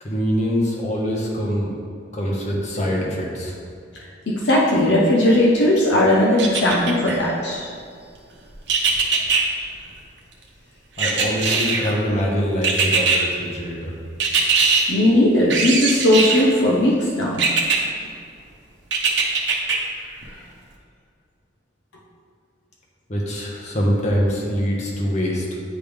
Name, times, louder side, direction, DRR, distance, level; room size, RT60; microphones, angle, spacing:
voice 1, 0.0-1.7 2.1-3.5 11.0-13.9 23.1-25.5, equal, 40° left, -3 dB, 1.1 m, -24 dB
voice 2, 4.3-7.7 11.4-11.6 14.9-17.5 20.3-20.4, left 1 dB, 65° left, -4 dB, 0.8 m, -18 dB
sound 1, 6.4-7.2 8.7-9.4 11.0-11.9 12.6-13.2 14.2-14.8 15.5-16.5 17.4-17.8 18.9-19.8 20.2-20.3, right 5 dB, 65° right, 0.9 m, -20 dB
9.8 x 3.4 x 3.5 m, 2.3 s
head